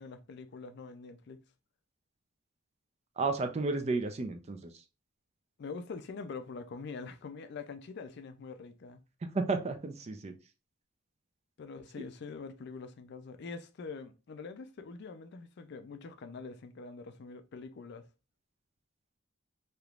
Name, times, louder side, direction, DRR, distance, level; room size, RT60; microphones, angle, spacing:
voice 1, 0.0-1.4 5.6-9.0 11.6-18.1, left 4 dB, 55° left, 0.4 m, -44 dB
voice 2, 3.2-4.6 9.3-10.3 12.0-12.1, right 3 dB, 35° right, 0.4 m, -32 dB
3.4 x 2.9 x 2.4 m
head